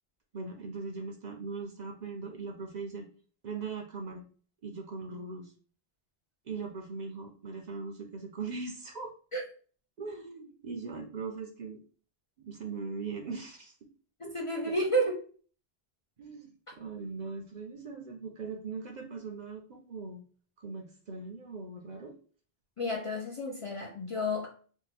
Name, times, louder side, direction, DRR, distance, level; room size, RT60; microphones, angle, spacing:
voice 1, 0.3-3.0 3.4-4.2 4.6-5.5 6.5-9.1 10.0-11.8 12.4-13.8 14.2-14.8 16.2-20.2 20.6-22.1, right 4 dB, 55° right, 0.6 m, -40 dB
voice 2, 14.2-15.2 22.8-24.5, equal, 45° left, 0.4 m, -31 dB
2.7 x 2.2 x 4.0 m
omnidirectional pair, 1.0 m